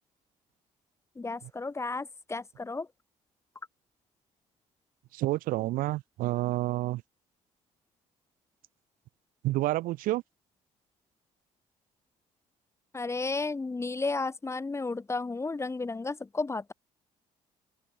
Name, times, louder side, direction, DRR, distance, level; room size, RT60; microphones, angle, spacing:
voice 1, 1.2-2.9 12.9-16.7, left 3 dB, 20° left, 1.0 m, -33 dB
voice 2, 5.1-7.0 9.4-10.2, right 17 dB, 80° right, 0.8 m, -29 dB
open air
cardioid pair, 90°, 14 cm